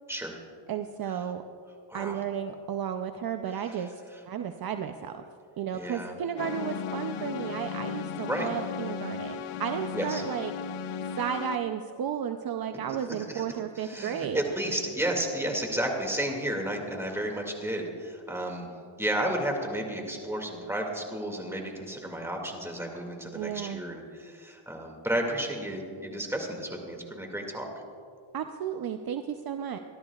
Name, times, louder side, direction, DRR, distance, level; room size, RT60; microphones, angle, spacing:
voice 1, 0.7-1.4 1.9-5.2 5.6-10.5 11.2-14.4 23.3-23.8 28.3-29.8, right 8 dB, 45° right, 7 dB, 0.6 m, -33 dB
voice 2, 1.9-2.2 5.7-6.2 8.3-8.5 9.9-10.2 13.2-13.4 13.8-18.7 19.0-27.7, right 1 dB, 5° right, 1 dB, 2.3 m, -32 dB
sound 1, 6.4-11.6, left 6 dB, 80° left, 0.8 m, -36 dB
26.0 x 12.5 x 2.4 m, 2.4 s
cardioid pair, 105°, 49 cm